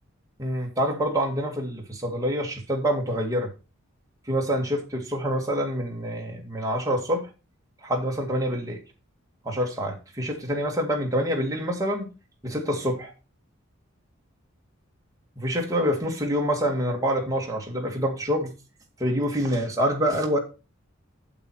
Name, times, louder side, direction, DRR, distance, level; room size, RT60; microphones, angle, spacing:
voice 1, 0.4-3.5 4.3-7.3 7.8-8.8 9.4-12.1 12.4-13.1 15.4-18.5 19.0-20.4, equal, 15° right, 2.2 m, -26 dB
8.5 x 7.1 x 4.5 m
head